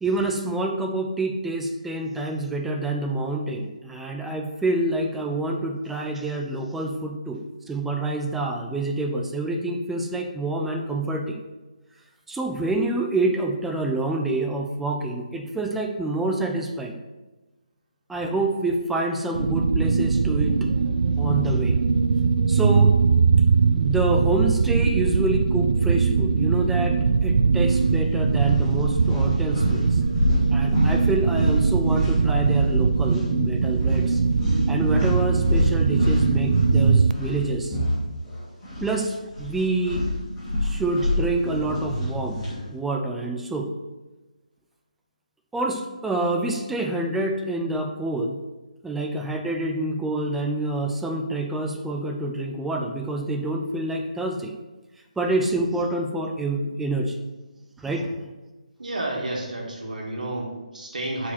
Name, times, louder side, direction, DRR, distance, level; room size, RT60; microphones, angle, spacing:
voice 1, 0.0-7.4 7.7-11.4 12.3-17.0 18.1-20.6 21.2-21.8 22.5-23.0 23.8-30.0 30.5-34.2 34.7-37.8 38.8-40.1 40.6-42.4 42.7-43.7 45.5-48.4 48.8-54.5 55.2-57.2 57.8-58.2, right 2 dB, 5° right, 2 dB, 0.5 m, -27 dB
sound 1, 19.4-37.1, right 5 dB, 65° right, 0.4 m, -21 dB
sound 2, 27.6-27.9 28.3-32.8 33.0-33.3 33.8-38.9 39.2-42.6, left 1 dB, 15° left, 2.8 m, -28 dB
voice 2, 58.8-61.3, right 1 dB, 80° right, -2 dB, 2.2 m, -31 dB
8.3 x 5.0 x 4.3 m, 1.1 s
hypercardioid pair, 160°, 4 cm